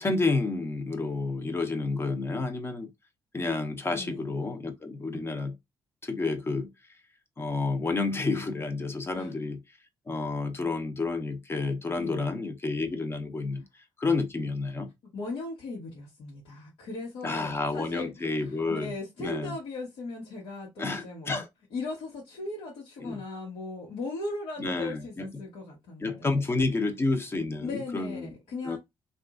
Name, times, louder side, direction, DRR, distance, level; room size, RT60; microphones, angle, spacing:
voice 1, 0.0-2.9 3.3-5.6 6.0-6.7 7.4-9.6 10.1-13.7 14.0-14.9 17.2-18.9 19.2-19.6 20.8-21.5 23.0-23.2 24.6-25.4 26.0-28.4 28.6-28.8, left 3 dB, 25° left, 0.7 m, -30 dB
voice 2, 12.0-12.3 15.1-21.4 21.7-26.4 27.6-28.8, left 2 dB, 90° left, 1.1 m, -38 dB
2.9 x 2.4 x 2.4 m
cardioid pair, 85°, 9 cm